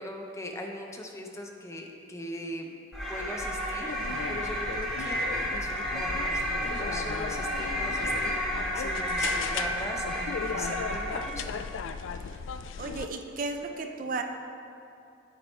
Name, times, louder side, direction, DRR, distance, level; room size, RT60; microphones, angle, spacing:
voice 1, 0.0-11.7, left 1 dB, 15° left, 2 dB, 0.6 m, -40 dB
sound 1, 2.9-11.5, equal, ahead, 1.3 m, -31 dB
sound 2, 3.9-13.1, left 6 dB, 80° left, 0.3 m, -37 dB
voice 2, 12.8-14.2, right 3 dB, 45° right, 5 dB, 0.4 m, -34 dB
8.8 x 4.8 x 4.3 m, 2.6 s
head